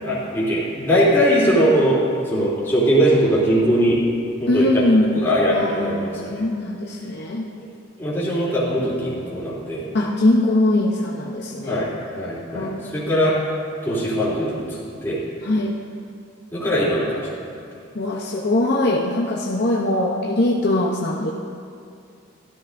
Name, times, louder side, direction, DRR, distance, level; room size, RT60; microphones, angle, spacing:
voice 1, 0.0-2.0 2.3-4.0 4.4-4.8 5.1-6.4 7.6-7.7 8.0-9.9 11.7-13.3 13.8-15.2 16.5-17.3, equal, 10° left, -9 dB, 3.0 m, -21 dB
voice 2, 4.5-5.1 5.5-7.5 9.9-11.8 12.2-12.3 12.5-13.0 15.4-15.8 17.9-21.3, left 1 dB, 50° left, -2 dB, 0.7 m, -21 dB
14.0 x 13.0 x 2.6 m, 2.4 s
head